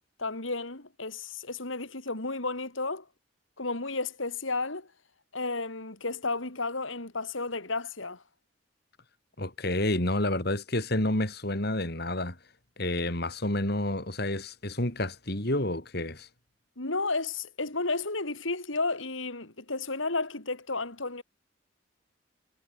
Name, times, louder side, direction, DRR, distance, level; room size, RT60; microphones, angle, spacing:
voice 1, 0.2-3.1 3.6-4.9 5.3-8.2 16.8-21.2, left 3 dB, 80° left, 3.9 m, -32 dB
voice 2, 9.4-12.4 12.8-16.3, left 1 dB, 55° left, 3.9 m, -29 dB
head